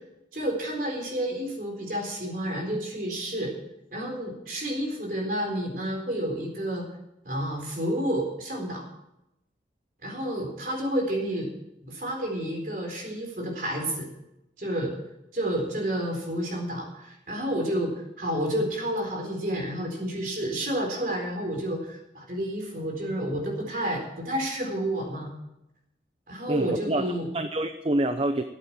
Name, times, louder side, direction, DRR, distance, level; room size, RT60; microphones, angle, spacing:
voice 1, 0.3-3.5 3.9-6.9 7.2-8.9 10.0-11.5 11.8-14.1 14.6-15.0 15.3-25.3 26.3-27.3, right 1 dB, 50° right, 1 dB, 4.1 m, -30 dB
voice 2, 26.5-28.4, right 1 dB, 30° right, 9 dB, 0.6 m, -27 dB
13.5 x 8.4 x 7.4 m, 0.87 s
head